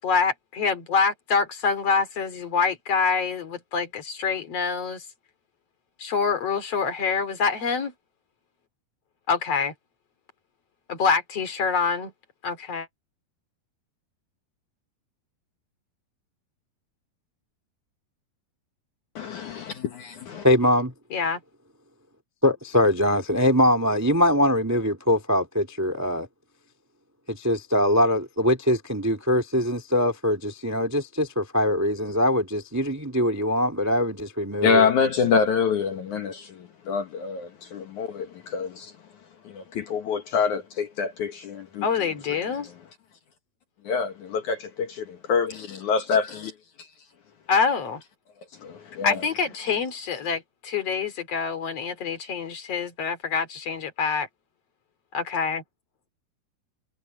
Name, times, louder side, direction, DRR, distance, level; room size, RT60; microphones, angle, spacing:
voice 1, 0.0-5.1 6.0-7.9 9.3-9.7 10.9-12.1 12.4-12.8 21.1-21.4 41.8-42.7 47.5-48.0 49.0-54.3 55.1-55.6, left 5 dB, 45° left, 3.4 m, -26 dB
voice 2, 19.2-20.4 34.6-38.9 39.5-41.9 43.9-45.5 45.9-46.3 48.6-49.1, left 5 dB, 60° left, 2.6 m, -26 dB
voice 3, 20.4-20.9 22.4-26.3 27.3-34.9, left 1 dB, 10° right, 0.7 m, -22 dB
omnidirectional pair, 4.4 m